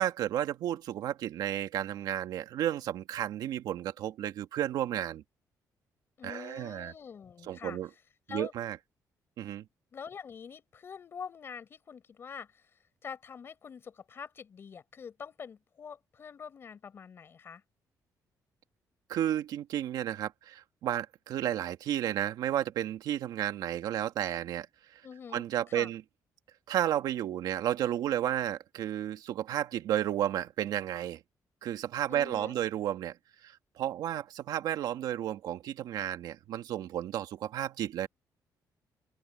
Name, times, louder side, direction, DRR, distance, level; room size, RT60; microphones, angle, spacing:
voice 1, 0.0-5.2 6.2-6.9 7.5-7.9 8.3-8.8 9.4-9.6 19.1-24.7 25.3-26.0 26.7-31.2 31.6-33.1 33.4-38.1, right 11 dB, 75° right, 2.1 m, -32 dB
voice 2, 6.2-7.8 8.3-8.5 9.9-12.6 13.0-17.6 25.0-25.9 32.1-32.6, left 6 dB, 35° left, 4.6 m, -45 dB
cardioid pair, 175°, 7 cm